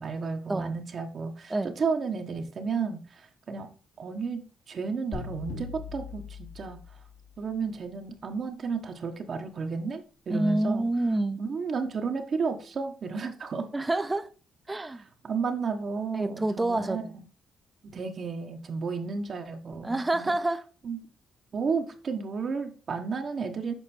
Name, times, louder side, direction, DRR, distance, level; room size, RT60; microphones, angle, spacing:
voice 1, 0.0-3.7 4.0-4.4 4.7-6.8 7.4-10.8 11.4-13.7 15.2-17.2 17.8-20.3 20.8-21.0 21.5-23.7, right 5 dB, 50° right, 1.1 m, -32 dB
sound 1, 5.1-7.3, left 5 dB, 80° left, 2.7 m, -40 dB
voice 2, 10.3-11.4 13.7-14.3 14.7-15.0 16.1-17.1 19.8-20.6, right 2 dB, 15° right, 0.7 m, -27 dB
7.3 x 4.4 x 4.4 m
cardioid pair, 90°, 0 cm